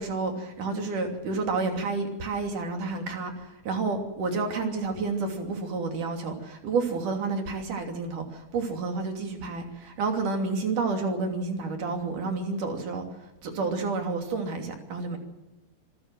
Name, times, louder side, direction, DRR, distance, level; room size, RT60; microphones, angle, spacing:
voice 1, 0.0-13.0 13.4-15.2, right 3 dB, 60° right, 3 dB, 4.4 m, -30 dB
26.0 x 14.0 x 7.7 m, 0.98 s
omnidirectional pair, 4.1 m